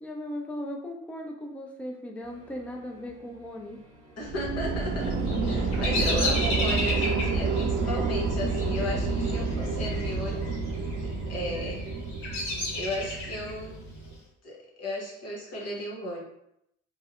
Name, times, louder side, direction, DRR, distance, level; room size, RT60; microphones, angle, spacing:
voice 1, 0.0-3.8, left 1 dB, 5° left, 1 dB, 0.4 m, -37 dB
sound 1, 2.2-11.1, right 2 dB, 80° right, 0.7 m, -48 dB
voice 2, 4.2-5.2 5.4-10.5 11.3-11.9 12.5-13.8 14.4-16.2, left 1 dB, 50° left, -2 dB, 0.9 m, -35 dB
sound 2, 4.2-14.2, right 4 dB, 45° right, 0.5 m, -29 dB
Bird vocalization bird call bird song, 5.0-10.1 10.3-10.9 11.5-13.5, left 2 dB, 75° left, 0.8 m, -32 dB
2.6 x 2.0 x 2.5 m, 0.77 s
hypercardioid pair, 55°, 32 cm